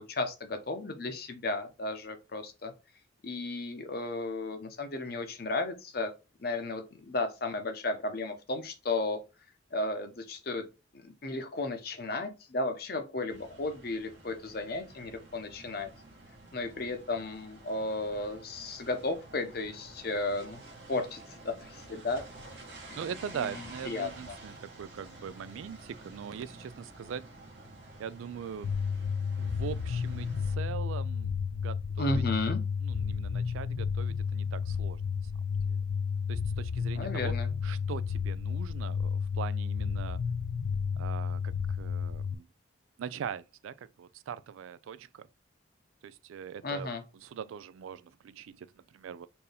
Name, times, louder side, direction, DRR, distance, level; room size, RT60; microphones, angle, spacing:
voice 1, 0.0-2.7 3.2-6.1 6.4-9.2 9.7-10.6 10.9-15.9 16.5-20.6 20.9-22.2 22.9-23.0 23.3-23.5 23.8-24.3 32.0-32.6 37.0-37.5 46.6-47.0, left 2 dB, 50° left, 0.7 m, -34 dB
sound 1, 13.3-30.6, right 2 dB, 60° right, 1.4 m, -50 dB
voice 2, 23.0-27.2 28.0-28.7 29.4-32.2 32.8-35.0 35.7-35.8 36.3-37.3 37.6-40.2 41.0-42.5 43.0-45.3 46.0-49.3, right 7 dB, 85° right, 0.3 m, -41 dB
sound 2, 28.6-42.3, left 6 dB, 85° left, 0.3 m, -32 dB
4.4 x 2.7 x 3.3 m
head